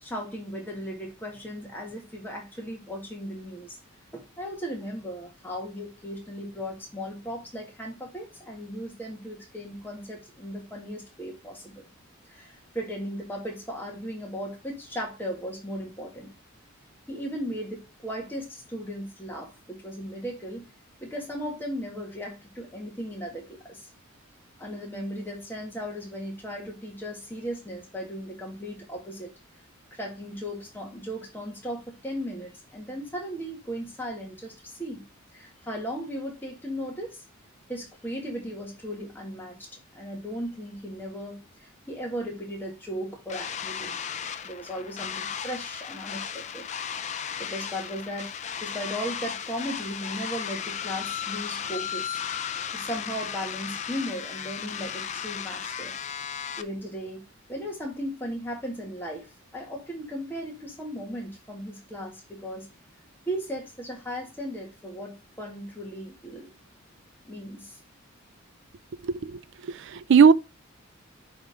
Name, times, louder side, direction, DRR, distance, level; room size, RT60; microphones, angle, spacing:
voice 1, 0.0-3.8 4.1-11.8 12.3-16.3 17.1-20.6 21.0-23.9 24.6-29.3 29.9-35.0 35.3-37.2 37.7-39.7 39.9-44.0 44.4-46.7 47.4-48.3 48.6-52.2 52.7-56.0 56.6-57.2 57.5-62.7 63.3-66.5 67.2-67.8, equal, 10° left, 1.8 m, -36 dB
sound 1, 43.3-56.6, left 8 dB, 35° left, 0.4 m, -35 dB
voice 2, 69.0-69.4 69.7-70.3, right 6 dB, 55° right, 0.4 m, -18 dB
10.5 x 3.6 x 3.5 m
head